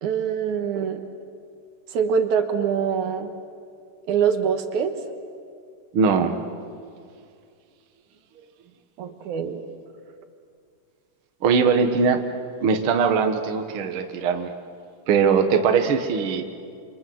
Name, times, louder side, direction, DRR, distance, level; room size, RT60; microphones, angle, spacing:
voice 1, 0.0-1.0 1.9-3.3 4.1-4.9 9.0-9.6, right 7 dB, 70° right, 7 dB, 2.7 m, -24 dB
voice 2, 5.9-6.4 11.4-12.2 12.6-14.5 15.1-16.4, right 5 dB, 50° right, 6 dB, 1.9 m, -20 dB
28.5 x 26.0 x 7.8 m, 2.3 s
omnidirectional pair, 3.7 m